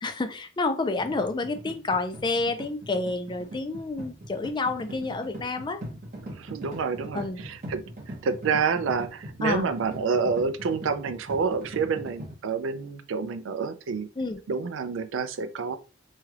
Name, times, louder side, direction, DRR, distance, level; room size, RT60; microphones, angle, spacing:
voice 1, 0.0-5.8 7.1-7.4 9.4-9.7 14.2-14.4, left 3 dB, 25° left, 0.4 m, -29 dB
sound 1, 1.0-12.3, right 1 dB, 45° right, 1.0 m, -41 dB
voice 2, 6.4-7.8 8.2-14.1 14.5-15.8, right 5 dB, 75° right, 0.4 m, -28 dB
3.2 x 2.3 x 2.9 m
head